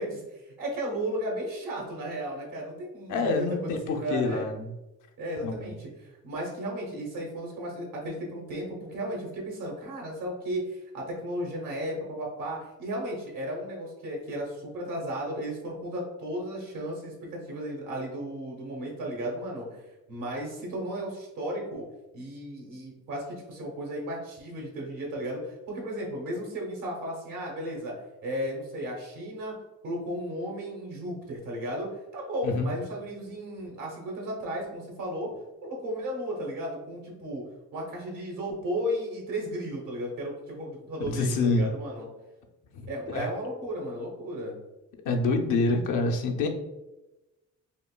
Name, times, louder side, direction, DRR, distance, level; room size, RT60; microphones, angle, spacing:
voice 1, 0.0-4.4 5.2-19.8 20.1-21.8 22.1-27.9 28.2-29.5 29.8-35.3 35.6-37.4 37.7-42.1 42.8-44.6, equal, 85° right, -1 dB, 1.3 m, -34 dB
voice 2, 3.1-4.7 5.4-5.7 32.4-32.7 41.1-41.7 42.7-43.3 45.0-46.5, left 3 dB, 80° left, 3 dB, 0.6 m, -27 dB
5.1 x 2.4 x 2.2 m, 1.0 s
cardioid pair, 90°, 30 cm